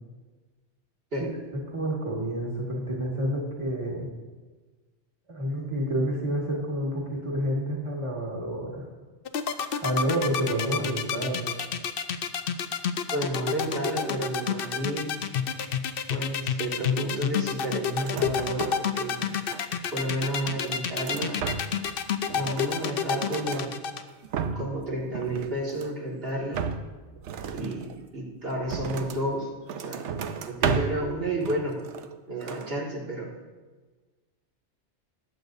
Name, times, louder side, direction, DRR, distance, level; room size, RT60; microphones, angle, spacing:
voice 1, 1.7-4.1 5.3-8.9 9.6-11.5, right 1 dB, 25° right, -3 dB, 1.9 m, -29 dB
sound 1, 9.3-24.0, left 8 dB, 60° left, 0.8 m, -28 dB
voice 2, 13.1-15.2 16.1-19.1 19.9-21.4 22.3-23.7 24.5-26.6 27.5-27.9 28.1-29.5 29.8-30.0 30.5-31.8 32.3-33.3, right 1 dB, 55° right, -5 dB, 2.2 m, -31 dB
sound 2, 17.9-18.9 19.2-20.0 20.5-21.9 22.2-23.7 24.1-24.8 25.1-26.0 26.5-29.3 29.7-31.1 31.4-32.2 32.4-32.7, right 6 dB, 80° right, 1.0 m, -34 dB
20.0 x 8.0 x 2.7 m, 1.3 s
omnidirectional pair, 1.2 m